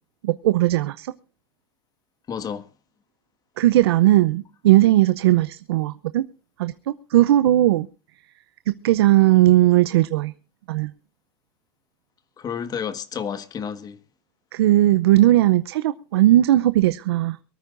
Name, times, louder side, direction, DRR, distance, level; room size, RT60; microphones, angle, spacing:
voice 1, 0.2-1.1 3.6-6.2 6.6-7.9 8.7-10.3 10.7-10.9 14.5-17.4, right 15 dB, 90° right, 0.7 m, -18 dB
voice 2, 2.3-2.7 12.4-14.0, left 7 dB, 30° left, 1.6 m, -30 dB
23.5 x 13.0 x 2.6 m
supercardioid pair, 120°, 13 cm